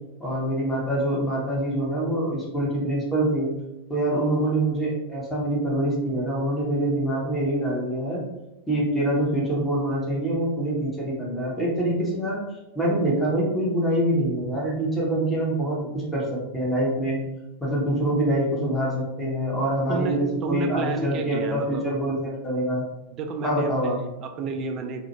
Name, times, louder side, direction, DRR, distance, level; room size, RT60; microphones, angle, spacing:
voice 1, 0.2-3.5 3.9-8.2 8.7-12.4 12.7-17.2 17.6-22.8 23.4-24.0, right 1 dB, 10° left, -4 dB, 0.9 m, -25 dB
voice 2, 19.9-21.9 23.1-25.1, right 3 dB, 35° right, 5 dB, 0.3 m, -31 dB
2.4 x 2.1 x 2.9 m, 0.97 s
figure-of-eight pair, 90°, 0 cm